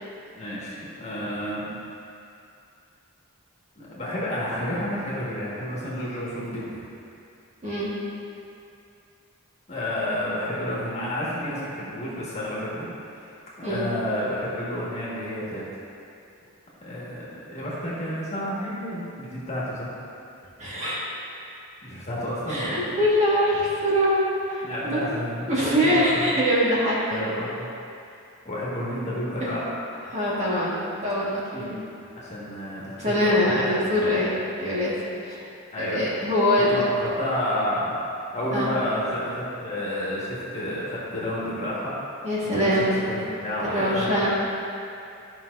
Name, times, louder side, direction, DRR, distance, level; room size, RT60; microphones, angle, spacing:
voice 1, 0.4-1.7 3.8-6.8 9.7-12.9 13.1-13.3 13.6-15.6 16.8-19.9 21.8-23.0 24.6-26.3 27.1-27.7 28.5-29.7 31.5-31.8 32.2-33.9 35.7-36.0 36.7-38.0 38.3-41.9 42.5-44.2, left 1 dB, 30° left, -8 dB, 1.7 m, -30 dB
voice 2, 20.6-21.0 22.5-25.1 25.5-27.4 29.4-29.5 30.1-31.7 33.0-34.9 35.3-35.4 35.8-36.7 38.5-38.7 42.2-43.0 43.6-44.3, equal, 30° right, -8 dB, 1.6 m, -23 dB
12.0 x 5.8 x 2.7 m, 2.6 s
head